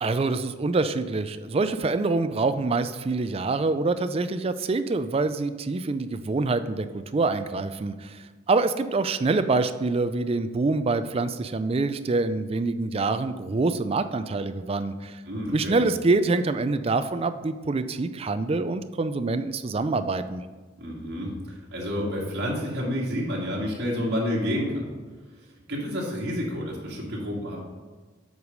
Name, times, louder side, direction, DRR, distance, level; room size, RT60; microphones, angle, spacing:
voice 1, 0.0-6.9 7.1-15.2 15.5-20.4, right 3 dB, 30° right, 11 dB, 0.4 m, -25 dB
voice 2, 15.3-15.8 20.8-24.8 25.7-27.6, equal, 55° right, -4 dB, 2.2 m, -29 dB
8.1 x 4.8 x 5.2 m, 1.4 s
head